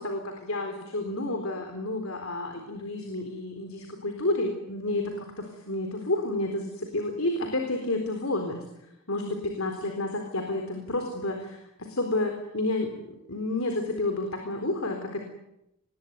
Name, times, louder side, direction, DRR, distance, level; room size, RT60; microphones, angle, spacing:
voice 1, 0.0-8.6 9.1-12.9 13.3-15.2, left 2 dB, 65° left, 5 dB, 4.1 m, -30 dB
26.0 x 21.5 x 9.4 m, 0.86 s
head